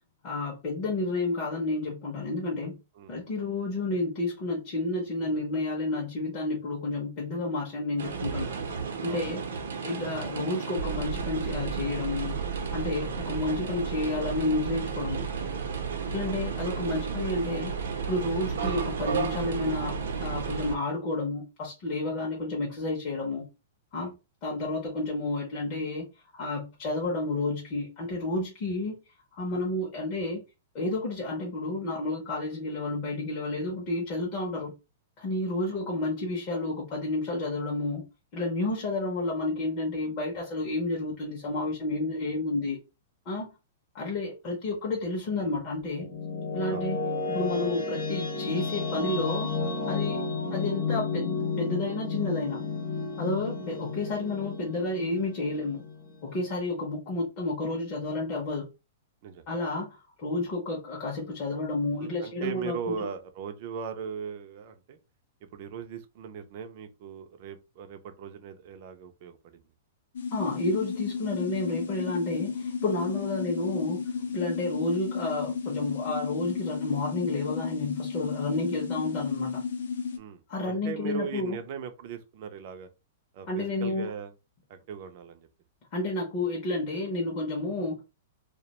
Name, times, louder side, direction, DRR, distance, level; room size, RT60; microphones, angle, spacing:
voice 1, 0.2-2.8 3.1-8.5 9.0-9.4 9.8-12.4 12.7-15.2 16.1-17.7 18.1-23.5 23.9-24.1 24.4-26.1 26.3-29.0 29.3-30.4 30.7-34.7 35.2-38.0 38.3-42.8 43.3-43.5 43.9-46.1 46.5-49.5 49.9-50.2 50.5-52.7 53.2-55.8 56.2-58.7 59.5-63.1 70.3-79.6 80.5-81.6 83.5-84.1 85.9-88.0, left 2 dB, 25° left, 0.5 m, -31 dB
sound 1, 8.0-20.7, right 6 dB, 90° right, 0.6 m, -32 dB
sound 2, 45.7-56.6, left 4 dB, 45° left, 0.8 m, -32 dB
voice 2, 62.0-65.0 65.5-69.6 80.2-82.9 83.3-84.3 84.7-85.5, right 7 dB, 35° right, 0.3 m, -39 dB
sound 3, 70.1-80.2, left 6 dB, 85° left, 0.5 m, -33 dB
2.2 x 2.1 x 2.8 m
supercardioid pair, 180°, 0 cm